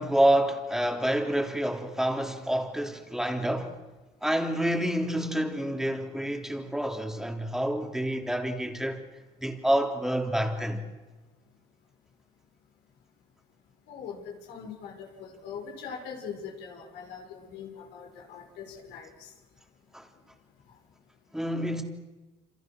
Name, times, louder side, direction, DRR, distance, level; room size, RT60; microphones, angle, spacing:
voice 1, 0.0-3.7 4.2-9.0 9.4-10.8 19.9-20.0 21.3-21.8, right 1 dB, 5° right, 3.3 m, -28 dB
voice 2, 13.9-19.3, left 6 dB, 85° left, 6.0 m, -42 dB
28.0 x 27.5 x 6.3 m
cardioid pair, 110°, 17 cm